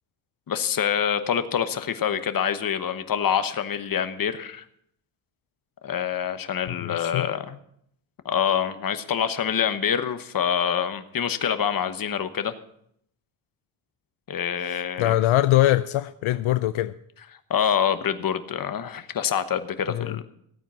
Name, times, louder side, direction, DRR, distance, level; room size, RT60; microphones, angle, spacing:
voice 1, 0.5-4.6 5.8-7.6 8.2-12.5 14.3-15.2 17.5-20.2, left 8 dB, 45° left, 1.1 m, -26 dB
voice 2, 6.7-7.3 14.7-16.9 19.9-20.2, left 15 dB, 80° left, 0.7 m, -23 dB
16.0 x 9.1 x 6.2 m
cardioid pair, 125°, 48 cm